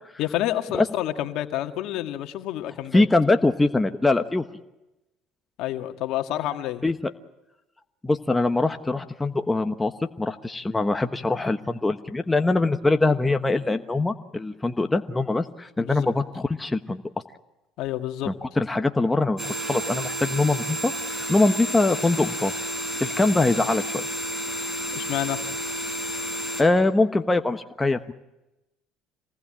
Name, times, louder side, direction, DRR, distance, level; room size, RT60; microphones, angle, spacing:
voice 1, 0.2-3.0 5.6-6.8 15.8-16.0 17.8-18.3 24.9-25.4, left 13 dB, 70° left, 6 dB, 1.8 m, -29 dB
voice 2, 2.9-4.4 6.8-7.1 8.0-9.9 10.2-17.0 18.2-22.5 23.0-24.1 26.6-28.1, left 2 dB, 15° left, 7 dB, 1.2 m, -23 dB
sound 1, 19.4-26.6, equal, 15° right, 6.6 m, -31 dB
26.5 x 19.0 x 8.8 m, 0.99 s
supercardioid pair, 85°, 0 cm